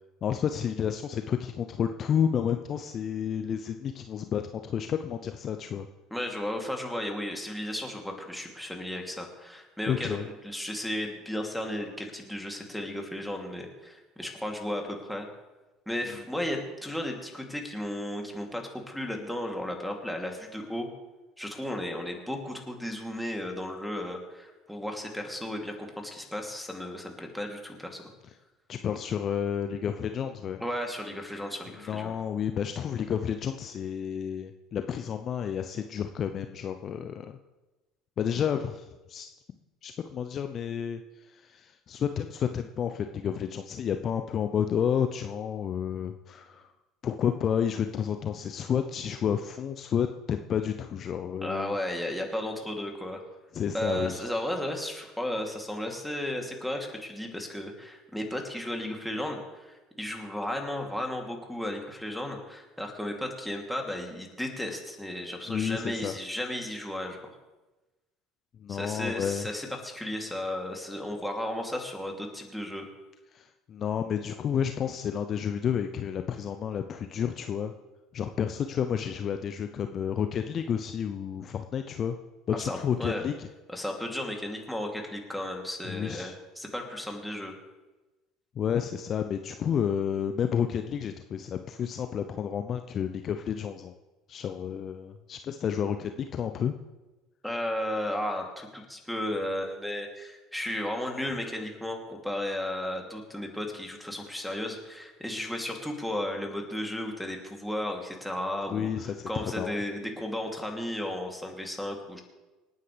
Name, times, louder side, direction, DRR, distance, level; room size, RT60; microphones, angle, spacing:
voice 1, 0.2-5.9 9.9-10.2 28.7-30.6 31.9-37.4 38.2-39.3 39.8-41.0 41.3-46.7 47.0-51.7 53.5-54.2 65.5-66.1 68.6-69.5 73.3-77.7 78.1-82.2 82.5-83.5 85.9-86.3 88.6-93.9 94.3-96.7 108.7-109.8, left 8 dB, 40° left, 7 dB, 0.6 m, -30 dB
voice 2, 6.1-15.3 15.9-20.9 21.4-28.0 30.6-32.2 51.4-53.2 53.7-67.3 68.7-72.9 82.5-83.2 83.7-87.5 97.4-112.2, left 1 dB, ahead, 1 dB, 2.9 m, -34 dB
27.0 x 9.4 x 3.4 m, 1.1 s
figure-of-eight pair, 65°, 0 cm